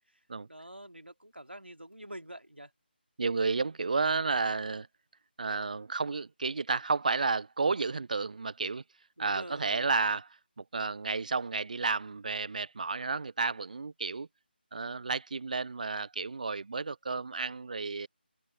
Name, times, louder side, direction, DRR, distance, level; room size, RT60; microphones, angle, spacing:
voice 1, 0.5-2.7 9.2-9.9, right 1 dB, 90° right, 2.8 m, -46 dB
voice 2, 3.2-4.9 5.4-8.8 9.2-14.3 14.7-18.1, right 4 dB, 45° right, 0.5 m, -32 dB
figure-of-eight pair, 160°, 6 cm